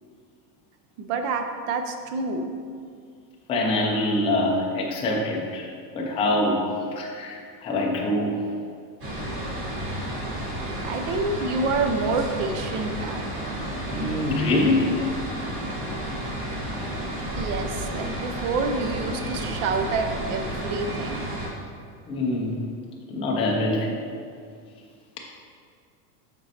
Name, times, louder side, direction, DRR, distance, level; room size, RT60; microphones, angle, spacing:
voice 1, 1.0-2.5 10.8-13.3 17.4-21.3, right 4 dB, 50° right, 6 dB, 0.6 m, -28 dB
voice 2, 3.5-5.6 5.9-8.4 11.6-11.7 13.9-15.0 22.1-22.6 23.1-24.0, left 1 dB, 15° left, -2 dB, 0.4 m, -24 dB
sound 1, 9.0-21.5, right 1 dB, 25° right, 1.4 m, -31 dB
7.2 x 5.2 x 2.8 m, 2.2 s
supercardioid pair, 150°, 48 cm